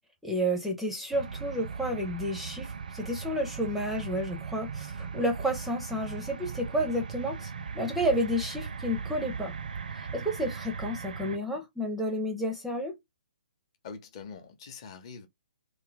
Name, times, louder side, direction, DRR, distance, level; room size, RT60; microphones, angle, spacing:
voice 1, 0.2-9.5 10.0-12.9, equal, 5° right, 0.5 m, -31 dB
sound 1, 1.1-11.4, right 6 dB, 60° right, 0.5 m, -38 dB
voice 2, 13.8-15.3, left 5 dB, 35° left, 0.8 m, -44 dB
3.3 x 2.2 x 3.8 m
figure-of-eight pair, 130°, 5 cm